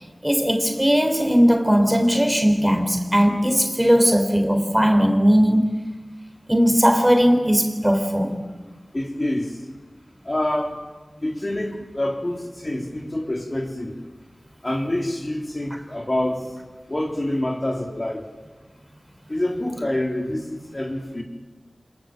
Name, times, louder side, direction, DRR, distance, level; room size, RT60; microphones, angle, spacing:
voice 1, 0.2-5.7 6.5-8.4, equal, 10° right, 3.7 m, -18 dB
voice 2, 8.9-9.5 10.3-10.8 11.2-13.9 14.6-16.4 16.9-18.2 19.3-21.2, left 1 dB, 35° left, 3.7 m, -26 dB
27.5 x 21.0 x 7.5 m
cardioid pair, 40°, 0 cm